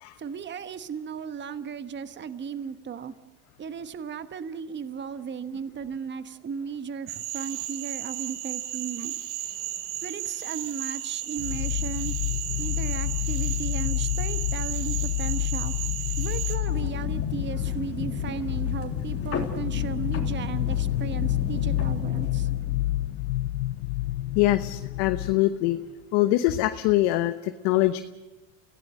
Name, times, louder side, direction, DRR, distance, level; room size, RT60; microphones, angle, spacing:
voice 1, 0.2-3.1 3.6-9.1 10.0-12.1 12.6-15.7 16.2-22.5, right 7 dB, 25° right, 11 dB, 1.2 m, -36 dB
Cricket / Frog, 7.1-16.6, right 12 dB, 80° right, 2.9 m, -34 dB
sound 1, 11.4-25.4, left 16 dB, 75° left, 0.8 m, -29 dB
sound 2, 16.7-23.2, left 4 dB, 30° left, 3.4 m, -34 dB
voice 2, 24.3-25.8 26.1-28.0, left 15 dB, 60° left, 9 dB, 1.1 m, -23 dB
28.5 x 16.5 x 6.5 m, 1.1 s
supercardioid pair, 105°, 45 cm